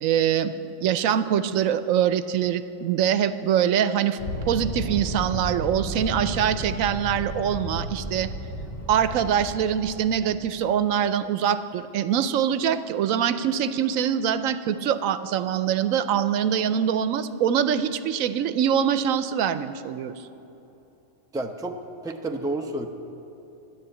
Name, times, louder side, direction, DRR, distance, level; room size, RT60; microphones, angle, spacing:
voice 1, 0.0-0.5 0.8-4.2 4.5-8.3 8.9-20.1, right 9 dB, 90° right, 12 dB, 1.0 m, -24 dB
sound 1, 4.2-10.6, equal, 25° left, 1.9 m, -33 dB
voice 2, 21.3-21.8 22.0-22.9, right 2 dB, 5° right, 4 dB, 0.5 m, -30 dB
13.0 x 10.5 x 8.3 m, 3.0 s
omnidirectional pair, 1.4 m